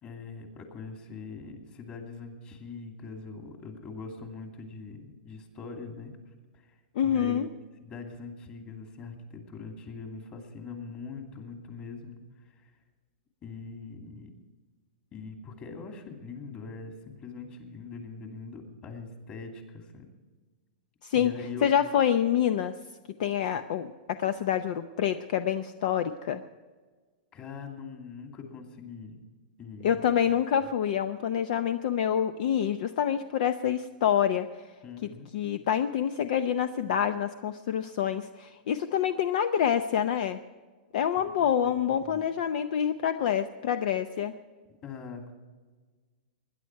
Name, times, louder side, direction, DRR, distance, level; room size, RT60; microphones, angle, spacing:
voice 1, 0.0-6.1 6.5-6.7 7.0-7.5 7.8-12.2 12.6-12.7 13.4-14.3 15.1-16.9 17.2-20.0 21.1-21.7 27.3-29.2 29.6-30.0 30.6-30.7 34.8-35.3 41.2-42.2 44.8-45.3, left 4 dB, 25° left, 3 dB, 2.7 m, -42 dB
voice 2, 7.0-7.5 21.0-21.3 21.6-22.7 23.2-26.4 29.8-34.5 35.3-40.4 40.9-44.3, left 9 dB, 60° left, 10 dB, 0.7 m, -27 dB
20.5 x 10.5 x 4.6 m, 1.4 s
supercardioid pair, 155°, 5 cm